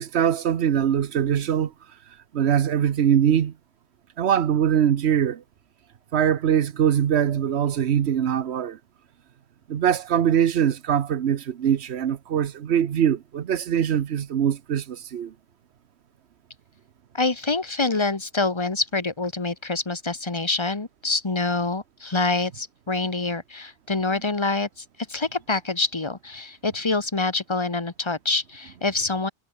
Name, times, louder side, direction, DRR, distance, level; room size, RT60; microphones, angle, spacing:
voice 1, 0.0-1.7 2.3-3.5 4.2-5.4 6.1-8.8 9.7-15.3, right 9 dB, 85° right, 1.1 m, -22 dB
voice 2, 17.1-29.3, left 3 dB, 25° left, 1.5 m, -26 dB
omnidirectional pair, 1.1 m